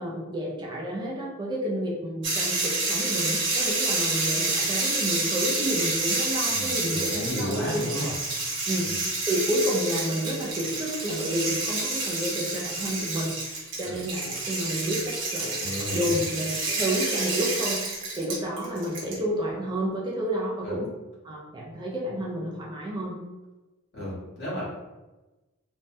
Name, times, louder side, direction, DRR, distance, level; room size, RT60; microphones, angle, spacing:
voice 1, 0.0-8.1 8.7-8.9 9.3-13.3 13.8-17.8 18.2-20.9 21.2-23.2, equal, 20° right, -3 dB, 0.4 m, -30 dB
sound 1, 2.2-19.1, right 2 dB, 60° right, 1.0 m, -29 dB
voice 2, 6.5-8.1 8.8-9.0 13.8-14.0 15.6-16.2 20.6-20.7 23.9-24.6, equal, 55° left, -8 dB, 1.4 m, -33 dB
3.3 x 2.1 x 2.6 m, 1.1 s
head